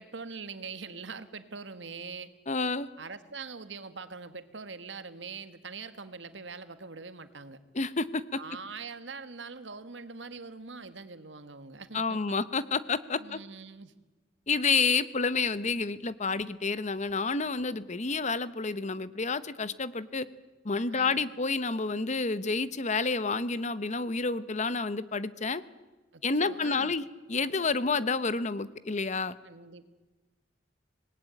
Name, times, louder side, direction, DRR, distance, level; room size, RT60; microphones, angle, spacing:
voice 1, 0.0-2.3 3.0-7.6 8.4-12.4 13.2-13.9 20.9-21.2 26.1-26.9 29.4-29.9, right 4 dB, 90° right, 10 dB, 1.7 m, -43 dB
voice 2, 2.5-2.9 7.7-8.4 11.9-13.4 14.5-20.3 20.6-25.6 26.2-27.0 27.3-29.4, left 4 dB, 40° left, 15 dB, 1.0 m, -29 dB
26.0 x 19.5 x 9.2 m, 1.2 s
head